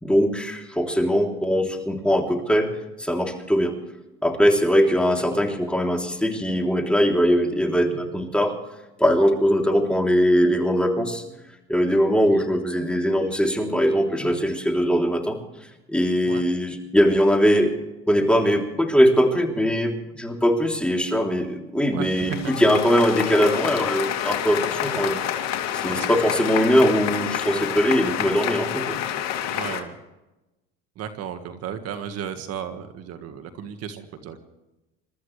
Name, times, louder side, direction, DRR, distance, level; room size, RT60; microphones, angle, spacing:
voice 1, 0.0-2.7 3.0-3.8 4.2-8.5 9.0-11.2 11.7-15.4 15.9-17.7 18.1-25.2 25.7-29.0, equal, 5° left, 1 dB, 3.4 m, -21 dB
voice 2, 21.9-22.5 25.9-26.1 29.5-30.0 31.0-34.4, right 8 dB, 55° right, 8 dB, 1.7 m, -34 dB
sound 1, 22.1-29.8, left 10 dB, 60° left, 2.5 m, -28 dB
28.0 x 13.5 x 3.3 m, 1.0 s
supercardioid pair, 105°, 30 cm